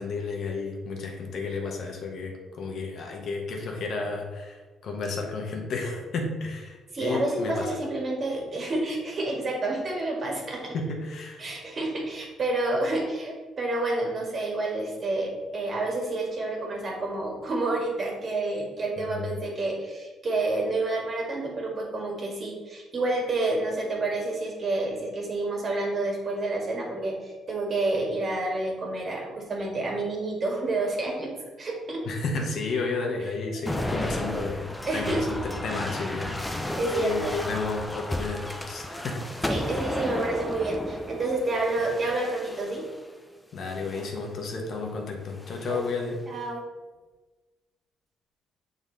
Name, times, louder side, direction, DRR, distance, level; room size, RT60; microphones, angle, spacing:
voice 1, 0.0-7.8 10.7-11.4 19.0-19.3 32.1-34.6 34.9-39.5 41.8-41.9 43.5-46.2, left 3 dB, 65° left, 1 dB, 1.2 m, -32 dB
voice 2, 6.9-10.8 11.4-31.3 31.6-32.0 34.9-35.2 36.8-37.4 39.5-42.8 44.5-44.7 45.7-46.6, right 2 dB, 45° right, -1 dB, 1.9 m, -29 dB
sound 1, 33.7-43.0 43.7-44.2 45.3-46.0, left 1 dB, 10° left, 0.7 m, -34 dB
7.0 x 4.0 x 4.0 m, 1.3 s
cardioid pair, 90°, 0 cm